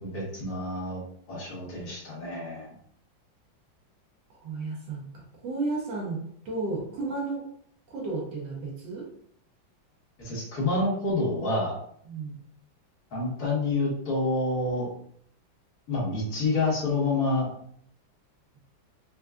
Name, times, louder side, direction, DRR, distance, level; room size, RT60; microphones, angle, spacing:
voice 1, 0.0-1.0 1.3-2.8 10.2-11.7 13.1-14.9 15.9-17.5, left 2 dB, 50° left, -6 dB, 1.7 m, -28 dB
voice 2, 4.4-6.2 6.4-7.5 7.9-9.0 12.1-12.3, right 3 dB, 70° right, -2 dB, 1.4 m, -33 dB
4.4 x 2.3 x 2.4 m, 0.65 s
omnidirectional pair, 2.1 m